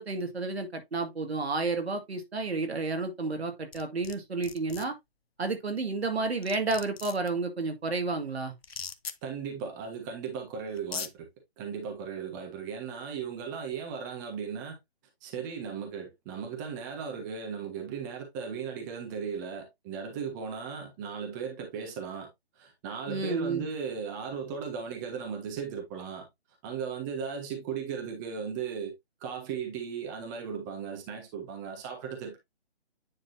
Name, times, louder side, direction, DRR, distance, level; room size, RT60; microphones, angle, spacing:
voice 1, 0.0-4.9 5.4-8.5 23.1-23.7, right 3 dB, 80° right, 2.1 m, -31 dB
sound 1, 3.7-4.1 4.4-4.8 6.0-6.1 6.4-7.3 8.6-9.1 10.3-10.4 10.8-11.1, left 6 dB, 70° left, 0.9 m, -38 dB
voice 2, 9.2-11.3 11.6-14.8 15.2-22.3 22.6-26.3 26.6-28.9 29.2-32.4, right 6 dB, 20° right, 1.3 m, -37 dB
9.6 x 4.1 x 2.7 m
hypercardioid pair, 155°, 31 cm